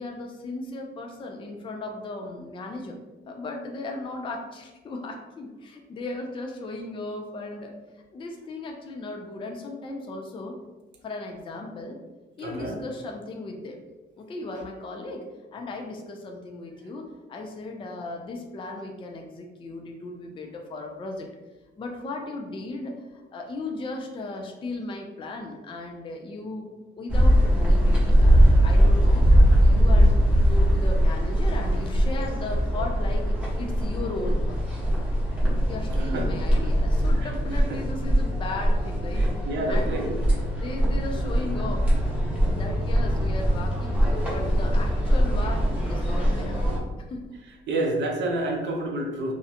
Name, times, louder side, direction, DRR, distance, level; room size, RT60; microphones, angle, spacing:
voice 1, 0.0-3.0 3.3-7.8 8.1-10.6 11.0-12.0 12.4-13.8 14.2-15.2 15.5-21.3 21.8-26.7 27.0-29.3 29.6-34.6 35.7-39.3 39.7-40.2 40.5-41.8 42.4-46.6 47.0-47.2, left 2 dB, 25° left, 2 dB, 0.4 m, -36 dB
voice 2, 12.4-12.8 35.9-36.3 37.2-37.3 37.7-37.8 39.2-40.2 47.7-49.3, right 1 dB, 65° right, 1 dB, 0.6 m, -29 dB
sound 1, 27.1-46.8, equal, 5° right, 0.9 m, -21 dB
2.4 x 2.1 x 2.7 m, 1.1 s
cardioid pair, 90°, 20 cm